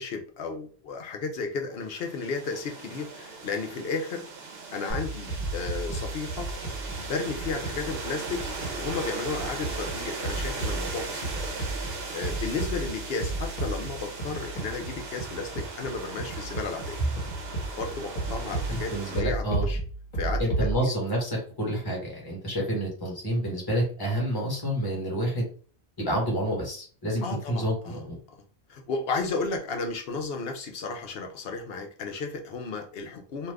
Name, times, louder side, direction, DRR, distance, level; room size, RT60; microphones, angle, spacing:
voice 1, 0.0-4.2 4.7-6.5 7.0-8.4 8.8-11.5 11.8-17.0 17.6-19.8 20.1-20.9 27.2-28.0 28.7-33.5, left 4 dB, 65° left, 4 dB, 0.8 m, -33 dB
sound 1, 1.8-19.2, right 4 dB, 70° right, 1.0 m, -38 dB
sound 2, 4.9-20.7, right 2 dB, 40° left, 1.3 m, -34 dB
voice 2, 18.7-19.7 20.4-25.5 26.0-28.2, right 1 dB, 20° left, -2 dB, 1.2 m, -29 dB
2.5 x 2.4 x 3.3 m, 0.42 s
omnidirectional pair, 1.1 m